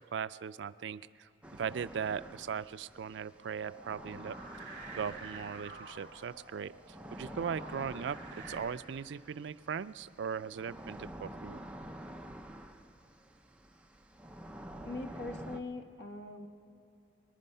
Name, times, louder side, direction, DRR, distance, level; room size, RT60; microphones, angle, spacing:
voice 1, 0.0-4.4 4.9-11.6, right 7 dB, 75° right, 15 dB, 0.4 m, -39 dB
sound 1, 1.4-15.6, right 1 dB, 5° right, 0.6 m, -49 dB
sound 2, 3.6-8.6, right 3 dB, 50° right, 4.1 m, -49 dB
voice 2, 14.8-16.5, left 2 dB, 65° left, 5 dB, 1.3 m, -42 dB
24.5 x 10.5 x 5.5 m, 2.9 s
head